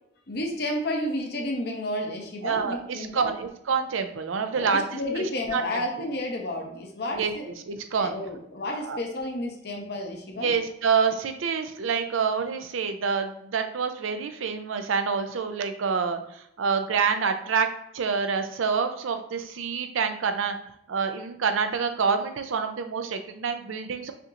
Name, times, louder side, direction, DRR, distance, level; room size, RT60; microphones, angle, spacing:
voice 1, 0.3-3.3 4.5-7.4 8.0-10.5, left 1 dB, 55° left, 1 dB, 0.8 m, -31 dB
voice 2, 2.4-5.6 7.1-7.3 7.7-8.2 8.8-9.0 10.4-17.7 17.9-20.5 20.9-24.1, right 5 dB, 85° right, 7 dB, 0.5 m, -27 dB
5.7 x 2.9 x 2.5 m, 0.77 s
head